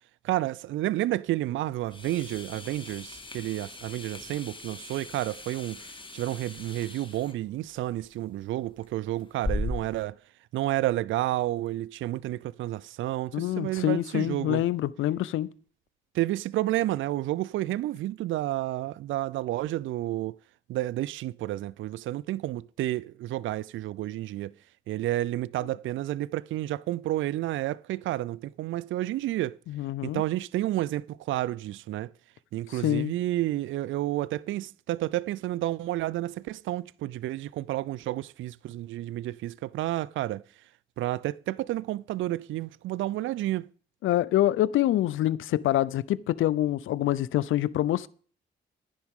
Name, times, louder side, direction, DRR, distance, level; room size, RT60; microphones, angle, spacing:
voice 1, 0.2-10.2 10.5-14.6 16.1-20.3 20.7-24.5 24.9-29.6 30.0-32.1 32.5-40.4 41.0-43.7, right 15 dB, 70° right, 0.4 m, -30 dB
sound 1, 1.8-10.0, left 2 dB, 25° left, 2.1 m, -39 dB
voice 2, 13.3-15.5 29.7-30.2 32.8-33.1 44.0-48.1, left 13 dB, 75° left, 0.6 m, -26 dB
14.5 x 10.0 x 3.7 m
hypercardioid pair, 40°, 21 cm